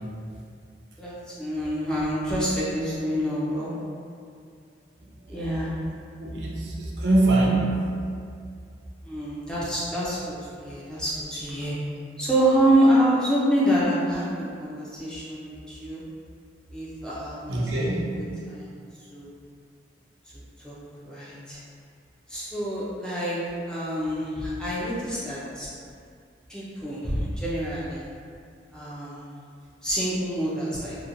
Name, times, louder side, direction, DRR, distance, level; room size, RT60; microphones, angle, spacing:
voice 1, 1.0-3.7 5.3-5.7 9.0-11.8 12.2-16.0 16.7-18.8 19.1-19.3 20.6-20.7 21.0-21.6 22.3-23.4 23.7-25.7 26.5-28.0 28.7-29.3 29.8-31.0, right 1 dB, 5° left, -9 dB, 0.4 m, -26 dB
voice 2, 6.2-7.9 17.5-18.2, right 2 dB, 65° right, -4 dB, 0.5 m, -23 dB
2.8 x 2.1 x 2.5 m, 2.3 s
head